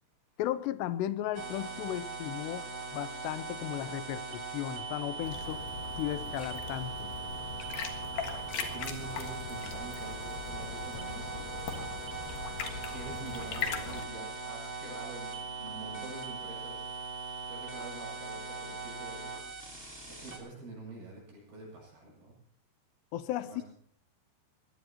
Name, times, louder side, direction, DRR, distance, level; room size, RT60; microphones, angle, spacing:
voice 1, 0.4-2.7 2.9-5.6 6.0-7.1 23.1-23.6, left 13 dB, 85° left, 14 dB, 2.9 m, -35 dB
sound 1, 1.3-20.4, right 4 dB, 15° right, 3.2 m, -40 dB
sound 2, 5.2-14.0, left 6 dB, 65° left, 3.2 m, -40 dB
voice 2, 8.3-11.9 12.8-16.9 17.5-19.4 20.1-22.3 23.4-23.6, right 3 dB, 65° right, -3 dB, 9.4 m, -46 dB
22.0 x 18.0 x 2.9 m, 0.62 s
omnidirectional pair, 4.9 m